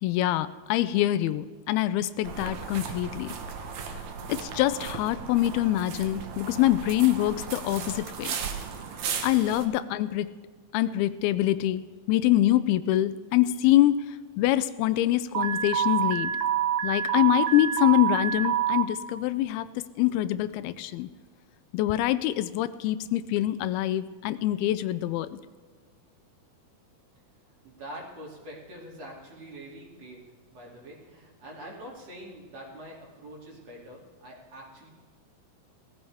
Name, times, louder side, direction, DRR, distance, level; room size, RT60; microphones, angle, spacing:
voice 1, 0.0-3.4 4.3-8.3 9.2-10.3 10.7-11.8 12.1-14.0 14.4-16.3 16.8-19.7 20.0-21.1 21.7-25.4, left 14 dB, 85° left, 14 dB, 2.5 m, -25 dB
sound 1, 2.2-9.6, right 6 dB, 65° right, 1.9 m, -36 dB
Alarm, 15.4-18.8, right 9 dB, 90° right, 2.9 m, -26 dB
voice 2, 27.6-30.2 30.5-34.9, right 1 dB, 45° right, -4 dB, 3.6 m, -44 dB
19.0 x 14.0 x 3.5 m, 1.5 s
omnidirectional pair, 4.4 m